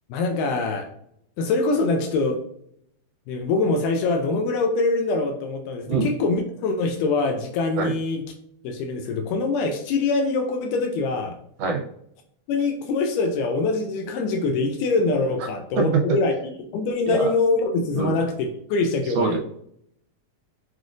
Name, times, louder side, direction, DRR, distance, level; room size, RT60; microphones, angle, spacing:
voice 1, 0.1-0.9 1.4-2.4 3.3-8.2 8.6-11.4 12.5-16.3 16.7-19.4, left 3 dB, 85° left, 3 dB, 2.1 m, -24 dB
voice 2, 15.8-16.1 17.1-17.3 18.0-18.2 19.2-19.4, right 4 dB, 80° right, 2 dB, 2.1 m, -23 dB
6.0 x 2.4 x 2.4 m, 0.70 s
omnidirectional pair, 3.7 m